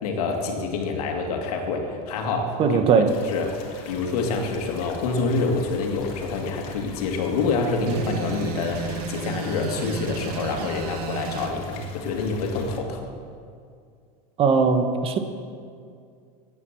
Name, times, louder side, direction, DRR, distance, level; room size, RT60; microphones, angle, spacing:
voice 1, 0.0-2.8 3.2-3.6 3.9-13.1, left 3 dB, 85° left, 2 dB, 2.2 m, -27 dB
voice 2, 2.6-3.1 14.4-15.2, right 5 dB, 30° right, 8 dB, 0.9 m, -19 dB
sound 1, 3.1-12.8, left 6 dB, 65° left, 1.8 m, -41 dB
sound 2, 7.9-11.5, right 7 dB, 90° right, 1.2 m, -33 dB
11.0 x 9.4 x 7.5 m, 2.3 s
supercardioid pair, 150°, 19 cm